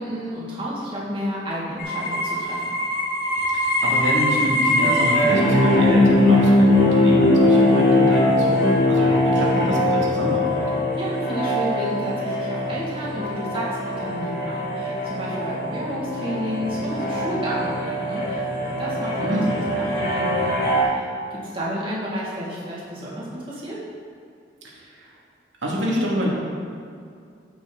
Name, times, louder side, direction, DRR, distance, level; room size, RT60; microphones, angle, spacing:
voice 1, 0.0-2.6 10.9-23.8, equal, 30° right, -7 dB, 2.4 m, -31 dB
sound 1, 1.8-20.8, left 1 dB, 50° left, 2.1 m, -21 dB
voice 2, 3.5-10.6 19.2-19.7 24.6-25.1 25.6-26.3, equal, 85° right, -4 dB, 2.4 m, -26 dB
14.0 x 5.9 x 4.1 m, 2.4 s
head